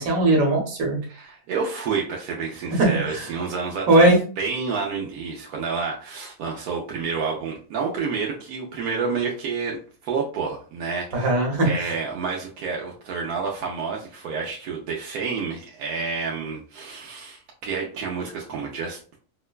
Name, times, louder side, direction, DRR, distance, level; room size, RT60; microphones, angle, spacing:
voice 1, 0.0-1.0 2.8-3.2 3.9-4.2 11.1-11.9, right 2 dB, 65° right, -1 dB, 1.5 m, -19 dB
voice 2, 1.1-4.1 4.4-11.3 11.6-19.2, right 5 dB, 85° right, -2 dB, 1.2 m, -29 dB
4.6 x 2.2 x 2.2 m, 0.40 s
omnidirectional pair, 1.5 m